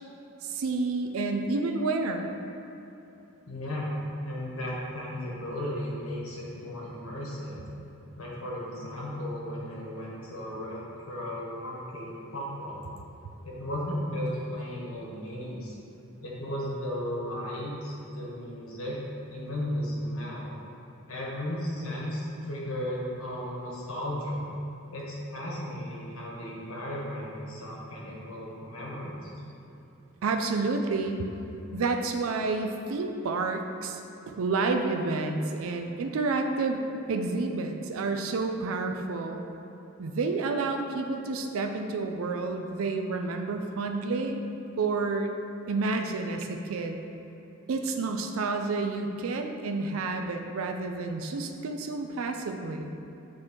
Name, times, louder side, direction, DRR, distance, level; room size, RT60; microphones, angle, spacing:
voice 1, 0.4-2.3 30.2-31.3 31.7-34.0 34.3-39.4 40.0-44.5 44.8-45.3 45.7-47.0 47.7-52.9, right 3 dB, 75° right, 4 dB, 0.4 m, -29 dB
voice 2, 3.5-4.0 4.2-7.6 8.2-12.8 13.4-15.7 16.2-19.0 19.3-20.5 21.1-24.4 24.9-29.3, left 1 dB, 80° left, -4 dB, 1.3 m, -35 dB
7.4 x 3.1 x 4.3 m, 3.0 s
head